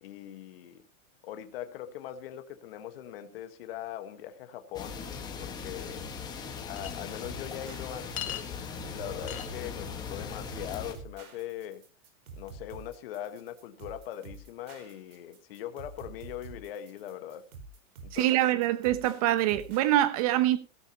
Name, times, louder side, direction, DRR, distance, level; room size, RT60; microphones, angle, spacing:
voice 1, 0.0-0.8 1.2-5.0 5.3-6.2 6.7-8.5 8.9-11.8 12.4-17.5 18.0-18.3, left 11 dB, 40° left, 1.4 m, -41 dB
sound 1, 4.7-10.9, left 5 dB, 10° left, 1.4 m, -39 dB
sound 2, 5.9-19.9, right 3 dB, 80° right, 4.8 m, -48 dB
Chink clink, 6.8-6.9 8.2-8.4 9.3-9.5, left 11 dB, 75° left, 2.4 m, -36 dB
voice 2, 18.1-20.6, right 14 dB, 25° right, 0.9 m, -25 dB
17.0 x 12.0 x 2.9 m
supercardioid pair, 175°, 43 cm